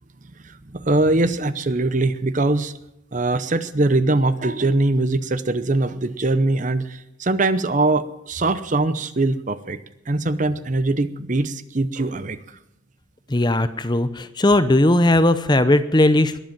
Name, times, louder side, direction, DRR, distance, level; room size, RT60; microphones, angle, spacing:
voice 1, 0.4-2.7 3.1-9.8 10.1-12.4, right 2 dB, 40° right, 13 dB, 0.7 m, -22 dB
voice 2, 13.3-16.4, left 1 dB, 20° left, 12 dB, 0.7 m, -17 dB
21.0 x 8.0 x 7.4 m, 0.85 s
head